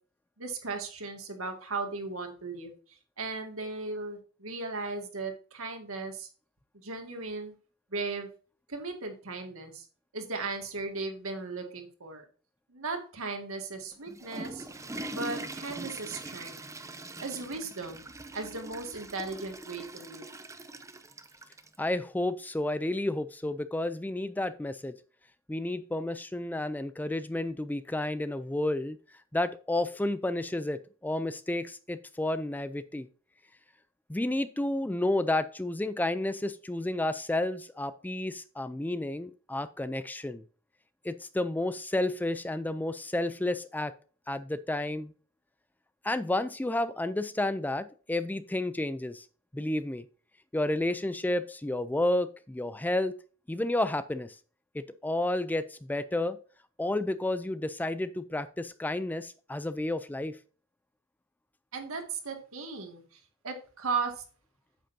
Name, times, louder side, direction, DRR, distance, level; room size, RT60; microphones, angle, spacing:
voice 1, 0.4-2.7 3.2-6.3 6.7-7.5 7.9-8.3 8.7-9.9 10.1-12.2 12.7-14.7 15.1-16.6 17.2-18.1 18.3-20.2 61.7-64.2, right 3 dB, 70° right, 4 dB, 2.0 m, -36 dB
Water / Toilet flush, 13.9-21.8, right 2 dB, 15° right, 0.7 m, -42 dB
voice 2, 21.8-25.0 25.5-29.0 29.3-33.1 34.1-40.4 41.0-43.9 44.3-45.1 46.0-49.3 49.5-50.0 50.5-53.1 53.5-54.4 54.7-56.4 56.8-60.4, left 1 dB, 10° left, 13 dB, 0.4 m, -31 dB
8.8 x 7.7 x 2.7 m, 0.39 s
head